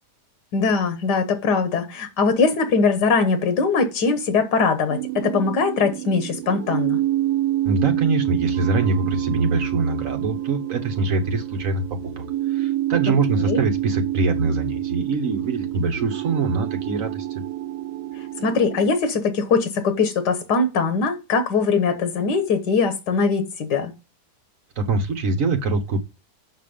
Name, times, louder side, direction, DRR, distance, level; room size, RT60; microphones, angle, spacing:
voice 1, 0.5-7.0 13.1-13.2 13.5-13.6 18.4-23.9, left 4 dB, 85° left, 1.8 m, -21 dB
sound 1, 4.9-19.0, right 14 dB, 90° right, 1.3 m, -27 dB
voice 2, 7.6-17.3 24.8-26.0, right 3 dB, 55° right, 1.6 m, -24 dB
6.7 x 6.1 x 5.1 m
omnidirectional pair, 1.8 m